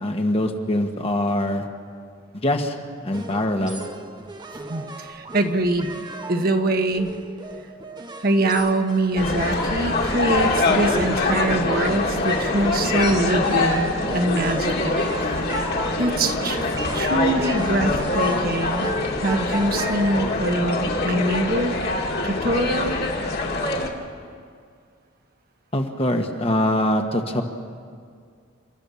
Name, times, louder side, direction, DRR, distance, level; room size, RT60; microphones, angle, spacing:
voice 1, 0.0-1.7 2.3-2.8 3.0-3.8 25.7-27.4, left 1 dB, 30° left, 4 dB, 1.4 m, -23 dB
sound 1, 3.1-20.2, right 2 dB, 20° right, 1.0 m, -35 dB
voice 2, 4.7-6.0 6.3-7.1 8.2-15.0 16.0-16.6 16.9-18.9 19.2-21.7 22.2-23.0, right 1 dB, 50° right, 5 dB, 1.3 m, -23 dB
sound 2, 9.2-23.9, left 2 dB, 50° left, 2.1 m, -24 dB
29.5 x 13.5 x 7.1 m, 2.1 s
head